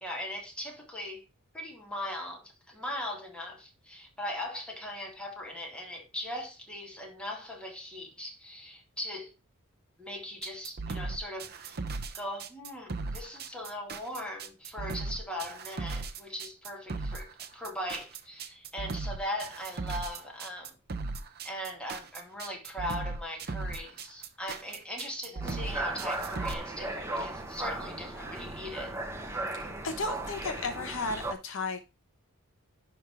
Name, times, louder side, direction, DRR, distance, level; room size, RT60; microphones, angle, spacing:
voice 1, 0.0-1.3 1.5-9.3 10.0-11.8 12.1-20.8 21.4-29.0, left 1 dB, 5° left, 2.3 m, -39 dB
sound 1, 10.4-26.5, right 3 dB, 45° right, 0.9 m, -37 dB
sound 2, 25.4-31.3, right 2 dB, 10° right, 1.3 m, -36 dB
voice 2, 29.8-31.8, left 3 dB, 60° left, 1.1 m, -34 dB
11.0 x 3.7 x 4.7 m
head